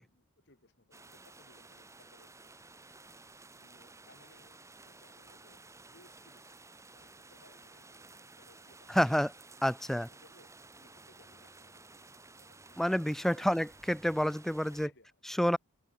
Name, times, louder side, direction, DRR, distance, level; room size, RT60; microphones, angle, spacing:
voice 1, 0.0-2.8 3.6-5.6 5.9-6.6 6.9-9.2 9.7-12.9 13.2-13.6 14.5-15.2, left 2 dB, 55° left, 7.8 m, -64 dB
sound 1, 0.9-14.9, right 3 dB, 15° right, 2.5 m, -55 dB
voice 2, 8.9-9.3 9.6-10.1 12.8-14.9 15.4-15.6, equal, ahead, 0.4 m, -28 dB
head